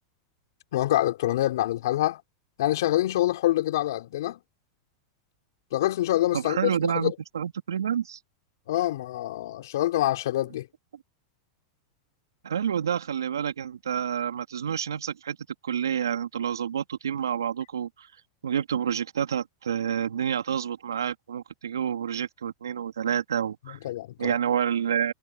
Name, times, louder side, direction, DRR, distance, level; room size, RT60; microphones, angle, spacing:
voice 1, 0.7-2.2 2.6-4.4 5.7-7.1 8.7-10.7 23.7-24.3, left 14 dB, 70° left, 4.3 m, -26 dB
voice 2, 6.3-8.2 12.4-15.4 15.6-18.1 18.4-23.8 24.2-25.1, right 8 dB, 85° right, 2.6 m, -28 dB
hypercardioid pair, 100°, 2 cm